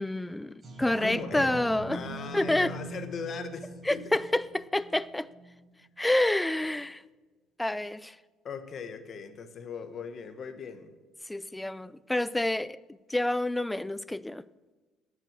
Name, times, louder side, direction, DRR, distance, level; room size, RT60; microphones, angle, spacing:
voice 1, 0.0-2.0 2.3-2.7 3.9-5.3 6.0-7.0 7.6-8.2 11.3-12.8 13.1-14.4, left 1 dB, 5° left, 0.4 m, -28 dB
sound 1, 0.6-5.7 6.1-6.2, right 2 dB, 30° right, 4.8 m, -41 dB
voice 2, 1.0-1.5 1.9-4.1 8.4-10.9, left 6 dB, 40° left, 1.4 m, -39 dB
18.0 x 7.8 x 6.5 m
cardioid pair, 140°, 0 cm